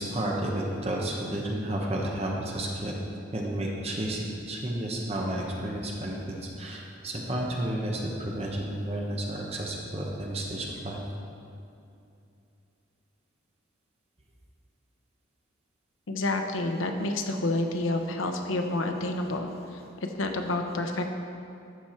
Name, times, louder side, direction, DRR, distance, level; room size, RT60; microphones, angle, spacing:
voice 1, 0.0-3.0 3.3-11.0, right 1 dB, 30° right, -1 dB, 1.0 m, -31 dB
voice 2, 16.1-21.1, left 2 dB, 85° left, 4 dB, 0.7 m, -29 dB
13.0 x 4.6 x 4.4 m, 2.6 s
head